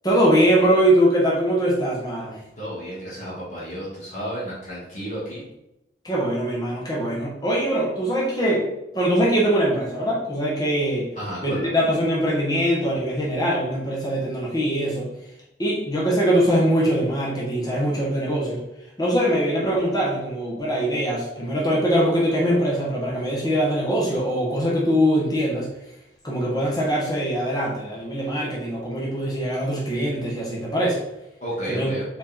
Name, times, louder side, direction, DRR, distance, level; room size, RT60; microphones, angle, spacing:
voice 1, 0.0-2.4 6.0-8.7 8.9-11.1 11.4-15.1 15.6-18.6 19.0-25.7 26.2-31.0 31.7-31.9, equal, 20° left, -5 dB, 1.7 m, -22 dB
voice 2, 2.6-5.4 11.2-11.8 31.4-32.1, right 1 dB, 45° left, -7 dB, 2.3 m, -32 dB
5.0 x 4.8 x 4.4 m, 0.86 s
head